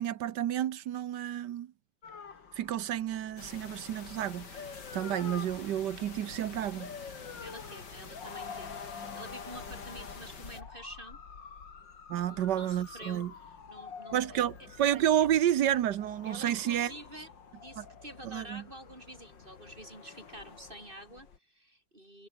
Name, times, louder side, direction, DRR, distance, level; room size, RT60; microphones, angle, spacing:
voice 1, 0.0-1.7 2.5-4.5 4.9-6.9 12.1-13.3 14.1-16.9 17.8-17.9 18.2-18.6, right 11 dB, 70° right, 1.4 m, -30 dB
sound 1, 2.0-21.4, left 6 dB, 90° left, 3.1 m, -47 dB
sound 2, 3.4-10.6, left 5 dB, 65° left, 3.4 m, -48 dB
voice 2, 7.4-11.2 12.1-14.4 16.2-22.3, right 1 dB, 25° right, 7.8 m, -48 dB
omnidirectional pair, 1.9 m